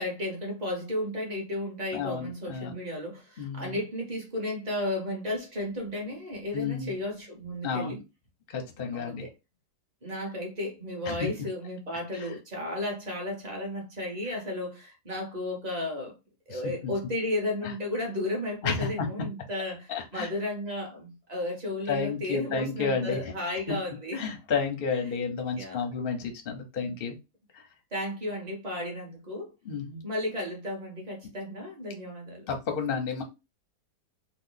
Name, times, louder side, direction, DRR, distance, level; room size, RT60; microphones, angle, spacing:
voice 1, 0.0-8.0 8.9-9.3 10.0-16.1 16.5-24.3 25.1-25.2 25.5-25.9 27.9-29.5 30.0-32.5, left 1 dB, 30° right, 1.1 m, -34 dB
voice 2, 1.9-2.7 3.4-3.8 6.5-6.9 7.6-8.0 8.5-9.2 11.1-11.2 12.1-12.3 16.5-16.9 18.6-18.9 19.9-20.3 21.9-23.2 24.1-27.2 27.5-27.6 29.6-30.0 32.5-33.2, left 5 dB, 45° left, 0.8 m, -31 dB
3.0 x 2.3 x 3.9 m
omnidirectional pair, 1.8 m